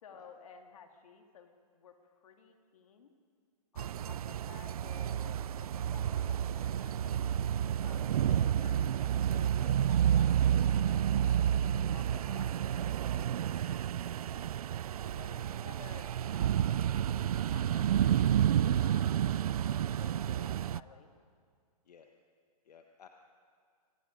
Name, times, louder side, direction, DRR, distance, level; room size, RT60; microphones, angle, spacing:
voice 1, 0.0-3.1 3.7-7.5 7.8-11.4 11.8-14.5 15.0-18.2 18.8-21.1, left 6 dB, 55° left, 4 dB, 2.4 m, -55 dB
sound 1, 3.8-20.8, right 10 dB, 65° right, 0.4 m, -30 dB
voice 2, 22.6-23.1, left 7 dB, 75° left, 4 dB, 1.4 m, -56 dB
26.0 x 19.5 x 5.2 m, 2.1 s
hypercardioid pair, 170°, 21 cm